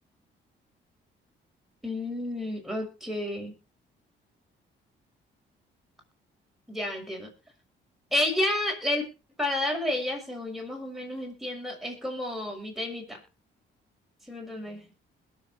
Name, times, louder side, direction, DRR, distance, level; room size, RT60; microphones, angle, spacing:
voice 1, 1.8-3.5 6.7-7.3 8.1-9.1 9.4-13.2 14.3-14.9, left 1 dB, ahead, 1 dB, 6.2 m, -31 dB
21.0 x 7.3 x 4.4 m, 0.31 s
cardioid pair, 90°, 20 cm